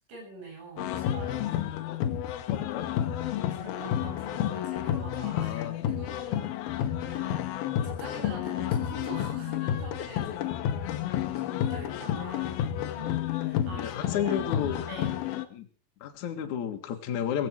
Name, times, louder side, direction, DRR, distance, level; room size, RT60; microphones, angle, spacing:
voice 1, 0.1-1.8 3.3-14.3 14.9-15.1, right 2 dB, 70° right, 1 dB, 10.0 m, -45 dB
sound 1, 0.8-15.5, left 11 dB, 85° left, 2.1 m, -30 dB
voice 2, 2.5-2.9 5.3-5.7 13.7-14.9 15.5-15.7 16.0-17.5, left 9 dB, 55° left, 4 dB, 2.2 m, -32 dB
17.5 x 16.0 x 4.6 m, 0.38 s
omnidirectional pair, 6.0 m